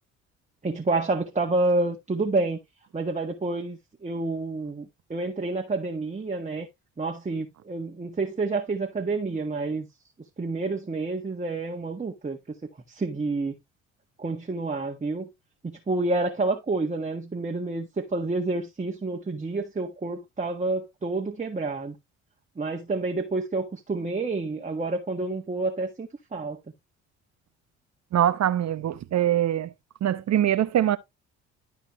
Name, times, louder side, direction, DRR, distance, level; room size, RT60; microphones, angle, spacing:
voice 1, 0.6-2.6 2.9-6.7 7.0-9.9 10.4-12.5 12.9-13.6 14.2-15.3 15.6-21.9 22.6-26.6, right 3 dB, 20° right, 1.6 m, -29 dB
voice 2, 28.1-29.7 30.0-31.0, right 11 dB, 50° right, 0.9 m, -23 dB
12.5 x 4.7 x 3.3 m
hypercardioid pair, 55°, 34 cm